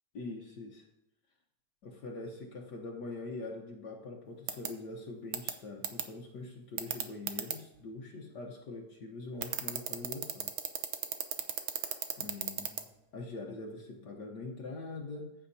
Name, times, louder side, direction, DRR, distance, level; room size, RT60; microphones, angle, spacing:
voice 1, 0.1-0.9 1.8-10.5 12.2-15.3, left 3 dB, 60° left, 0 dB, 1.6 m, -43 dB
sound 1, 4.5-4.7 5.3-5.5 5.8-6.0 6.8-7.5 9.4-12.8, right 10 dB, 80° right, 1.6 m, -33 dB
14.5 x 7.9 x 2.7 m, 0.88 s
omnidirectional pair, 2.1 m